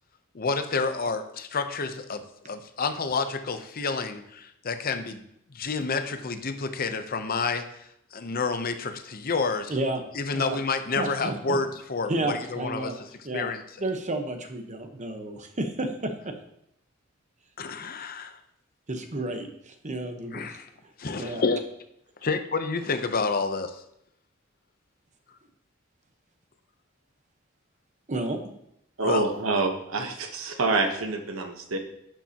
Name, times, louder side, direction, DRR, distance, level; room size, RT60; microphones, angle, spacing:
voice 1, 0.3-5.2 5.5-7.8 8.1-9.7 10.1-13.1 13.3-13.6 17.6-18.4 20.3-20.7 21.0-21.6 22.2-23.8 29.0-29.2, left 4 dB, 45° left, 8 dB, 0.7 m, -29 dB
voice 2, 9.7-10.0 10.3-10.6 10.9-11.6 12.1-13.0 13.2-13.5 13.8-16.3 18.9-20.4 21.2-21.4 28.1-28.4, right 2 dB, 35° right, 6 dB, 1.0 m, -31 dB
voice 3, 29.0-31.8, right 3 dB, 80° right, 5 dB, 1.1 m, -27 dB
11.5 x 6.8 x 2.9 m, 0.77 s
head